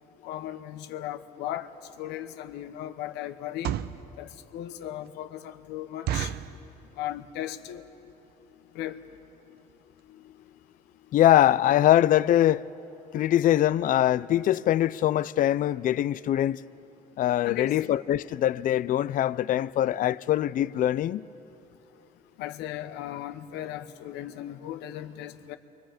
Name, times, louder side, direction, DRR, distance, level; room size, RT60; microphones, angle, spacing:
voice 1, 0.2-1.7 2.0-3.7 4.2-6.3 7.0-7.8 8.7-9.0 17.4-17.7 22.4-25.6, left 12 dB, 90° left, 1.0 m, -36 dB
sound 1, 1.8-2.0 2.5-2.7 3.4-4.0 4.6-4.7 5.0-5.1 5.5-5.6 6.1-6.6 7.2-7.4 7.7-7.8 8.0-8.3 8.8-8.9 9.2-9.3 9.7-9.8 10.0-10.1, right 11 dB, 70° right, 0.7 m, -32 dB
voice 2, 11.1-12.6 13.1-16.6 17.2-21.3, left 12 dB, 55° left, 0.5 m, -23 dB
29.5 x 24.0 x 5.1 m
cardioid pair, 110°, 17 cm